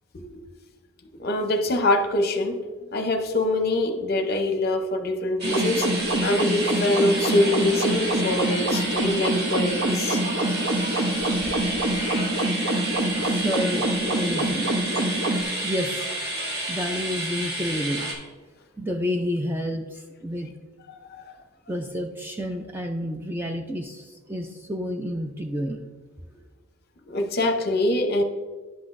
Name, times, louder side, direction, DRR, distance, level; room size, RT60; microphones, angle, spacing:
voice 1, 1.2-2.6 2.9-5.9 6.2-10.2 15.1-15.5 27.1-28.2, left 1 dB, 45° left, 5 dB, 0.7 m, -24 dB
sound 1, 5.4-18.1, right 1 dB, 45° right, 1.9 m, -30 dB
sound 2, 5.4-15.4, right 1 dB, 65° right, 0.8 m, -26 dB
voice 2, 13.2-14.9 15.6-16.1 16.7-18.1 18.8-20.5 21.7-25.8, equal, 10° right, 4 dB, 0.3 m, -30 dB
10.5 x 5.9 x 2.5 m, 1.4 s
head